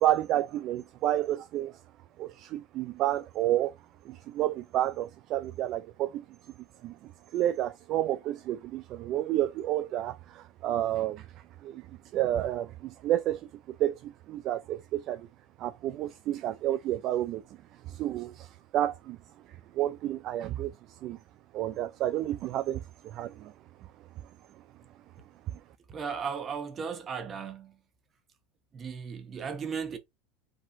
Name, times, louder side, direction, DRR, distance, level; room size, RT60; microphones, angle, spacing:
voice 1, 0.0-1.7 2.2-3.7 4.1-6.2 6.8-11.3 11.6-11.9 12.1-15.3 15.6-17.4 17.9-19.2 19.7-20.7 21.0-21.2 21.5-23.5, right 13 dB, 45° right, 0.5 m, -30 dB
voice 2, 25.9-27.8 28.7-30.0, right 6 dB, 30° right, 1.2 m, -36 dB
5.0 x 3.8 x 2.6 m
supercardioid pair, 125°, 0 cm